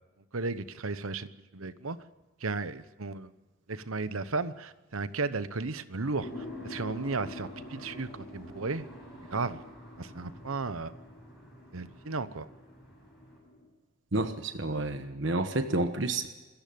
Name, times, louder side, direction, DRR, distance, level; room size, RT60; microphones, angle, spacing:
voice 1, 0.3-2.0 2.4-3.3 3.7-8.9 9.3-9.6 10.0-10.9 11.7-12.5, right 3 dB, 80° right, 13 dB, 1.0 m, -34 dB
sound 1, 6.0-13.4, equal, ahead, 7.9 m, -56 dB
sound 2, 6.2-13.7, left 1 dB, 50° left, 5.6 m, -46 dB
voice 2, 14.1-16.3, right 2 dB, 60° right, 8 dB, 1.2 m, -30 dB
26.0 x 14.5 x 7.0 m, 1.2 s
head